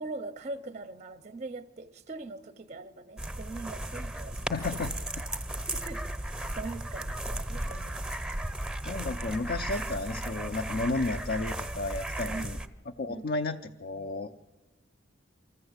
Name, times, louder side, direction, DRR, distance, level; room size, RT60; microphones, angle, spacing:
voice 1, 0.0-5.0 5.7-8.0 12.2-12.7 13.1-13.3, right 3 dB, 35° right, 0.6 m, -42 dB
sound 1, 3.2-12.7, right 1 dB, 5° right, 0.8 m, -35 dB
voice 2, 4.5-4.9 8.8-12.6 13.0-14.4, left 3 dB, 55° left, 0.6 m, -32 dB
24.5 x 14.5 x 8.0 m
head